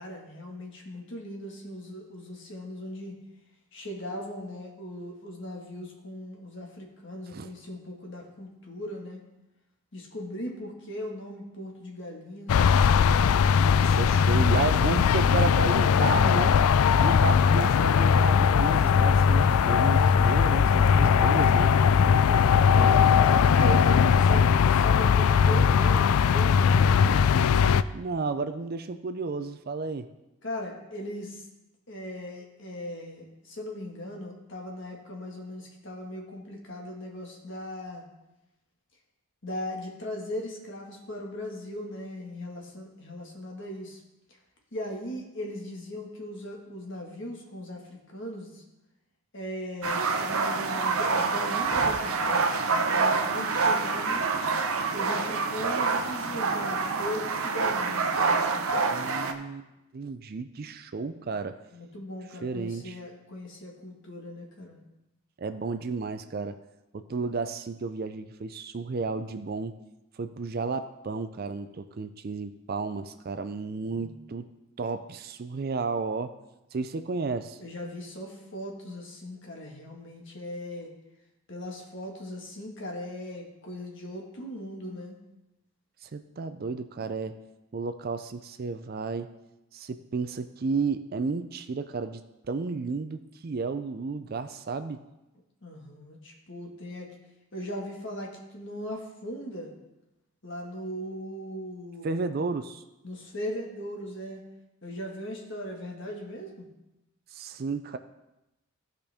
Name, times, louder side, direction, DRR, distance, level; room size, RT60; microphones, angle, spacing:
voice 1, 0.0-3.1 3.7-9.2 9.9-12.6 22.3-27.4 30.4-31.5 31.9-38.0 39.4-44.0 44.7-48.6 49.3-54.2 54.9-58.7 61.7-64.8 73.9-74.3 77.6-80.9 81.5-85.2 95.6-97.2 97.5-99.7 100.4-102.2 103.0-104.4 104.8-106.7, left 1 dB, 55° left, 0 dB, 1.7 m, -38 dB
sound 1, 12.5-27.8, left 6 dB, 75° left, 0.3 m, -20 dB
voice 2, 13.8-16.6 17.0-21.7 27.9-30.1 58.9-59.7 59.9-61.6 62.4-63.0 65.4-66.6 66.9-69.8 70.2-74.5 74.8-76.3 76.7-77.6 86.0-87.4 87.7-89.3 89.7-92.2 92.5-95.0 102.0-102.8 107.3-108.0, right 4 dB, 40° right, 10 dB, 0.4 m, -32 dB
sound 2, 49.8-59.3, right 4 dB, 70° right, 0.7 m, -26 dB
15.0 x 5.2 x 3.5 m, 0.94 s
head